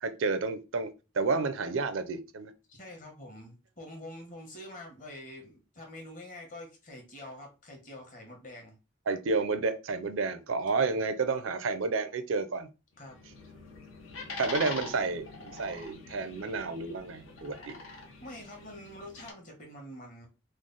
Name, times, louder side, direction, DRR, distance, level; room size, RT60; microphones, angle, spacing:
voice 1, 0.0-2.5 9.1-12.7 14.4-17.7, right 4 dB, 80° right, 0.5 m, -31 dB
voice 2, 2.7-8.7 10.8-11.1 13.0-13.2 18.2-20.3, left 1 dB, 40° left, 1.1 m, -46 dB
sound 1, 13.0-19.3, left 3 dB, 85° left, 0.9 m, -44 dB
3.2 x 2.0 x 3.8 m
head